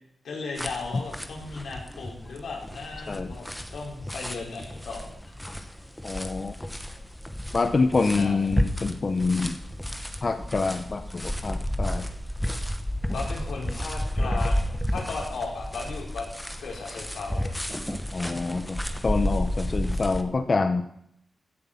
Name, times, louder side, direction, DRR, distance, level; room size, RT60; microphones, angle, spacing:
voice 1, 0.2-5.3 8.0-8.5 13.1-16.3 16.6-17.6, left 4 dB, 85° left, -1 dB, 4.2 m, -36 dB
sound 1, 0.6-20.2, equal, 5° left, 0.9 m, -32 dB
voice 2, 6.0-6.5 7.5-9.6 10.2-12.1 18.1-20.8, left 4 dB, 30° left, 8 dB, 0.7 m, -26 dB
15.5 x 7.9 x 5.7 m, 0.73 s
wide cardioid pair, 165°, 0 cm